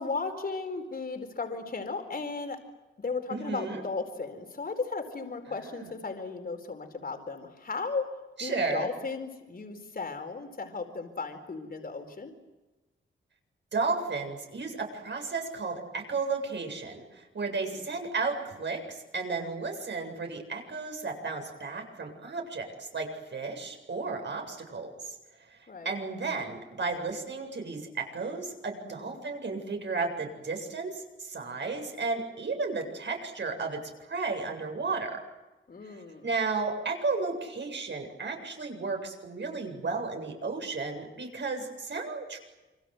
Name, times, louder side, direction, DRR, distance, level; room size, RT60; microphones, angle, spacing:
voice 1, 0.0-2.6 3.0-8.1 8.4-12.3 17.5-17.9 25.7-25.9 28.9-29.2 35.7-36.3, left 4 dB, 45° left, 6 dB, 4.5 m, -36 dB
voice 2, 3.3-3.8 5.7-5.9 8.4-8.9 13.7-23.1 23.3-25.1 25.5-25.6 25.8-33.8 34.1-35.2 35.8-36.0 36.2-42.4, right 4 dB, 60° right, 3 dB, 7.8 m, -33 dB
28.0 x 26.0 x 8.1 m, 1.1 s
wide cardioid pair, 100°, 20 cm